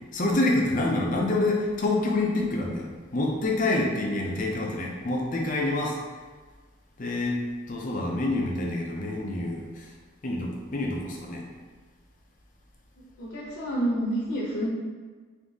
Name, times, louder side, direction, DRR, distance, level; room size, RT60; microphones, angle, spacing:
voice 1, 0.1-2.9 3.1-6.0 7.0-7.4 7.7-9.9 10.2-11.4, left 2 dB, 40° left, -1 dB, 0.5 m, -27 dB
voice 2, 13.0-14.7, right 1 dB, 70° left, -7 dB, 1.0 m, -29 dB
3.9 x 2.7 x 3.5 m, 1.4 s
head